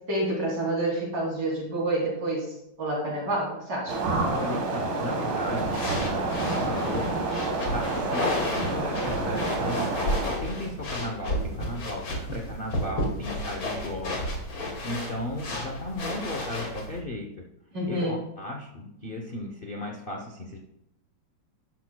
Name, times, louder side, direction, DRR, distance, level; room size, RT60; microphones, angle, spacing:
voice 1, 0.1-4.0 17.7-18.2, right 1 dB, 65° right, -4 dB, 3.7 m, -28 dB
sound 1, 3.9-10.3, right 3 dB, 80° right, 2.3 m, -28 dB
voice 2, 4.3-7.1 7.7-14.4 14.8-17.4 17.9-20.6, left 1 dB, 40° left, 0 dB, 0.8 m, -35 dB
sound 2, 5.6-17.0, left 1 dB, 90° left, 3.0 m, -32 dB
12.5 x 11.0 x 2.3 m, 0.83 s
omnidirectional pair, 2.1 m